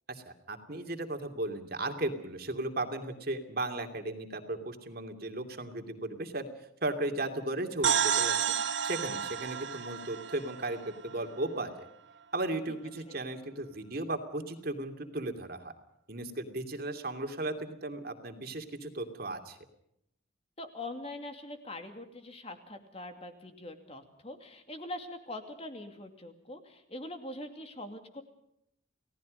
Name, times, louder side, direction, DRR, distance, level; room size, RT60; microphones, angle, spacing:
voice 1, 0.1-6.5 6.8-8.5 8.8-11.9 12.3-15.7 16.1-19.6, right 2 dB, 50° right, 6 dB, 2.7 m, -36 dB
sound 1, 7.8-11.5, right 8 dB, 65° right, 1.4 m, -31 dB
voice 2, 20.6-28.2, left 1 dB, 30° left, 6 dB, 2.5 m, -43 dB
29.5 x 18.0 x 5.3 m, 0.76 s
head